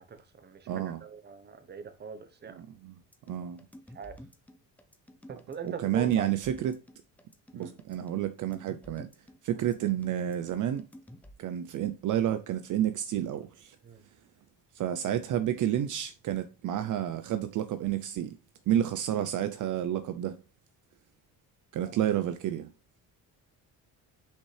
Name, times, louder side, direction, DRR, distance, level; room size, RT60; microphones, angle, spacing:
voice 1, 0.0-0.7 1.0-2.6 3.9-4.2 5.3-6.3 7.5-7.8 13.8-14.0, right 5 dB, 30° right, 0.9 m, -41 dB
voice 2, 0.7-1.0 2.5-3.0 3.3-3.6 5.6-6.8 7.5-9.1 9.4-10.9 11.4-13.8 14.7-18.3 18.7-20.4 21.7-22.7, right 11 dB, 55° right, 0.6 m, -30 dB
sound 1, 3.1-11.3, left 1 dB, 5° left, 0.7 m, -51 dB
6.7 x 5.4 x 3.2 m
cardioid pair, 150°, 36 cm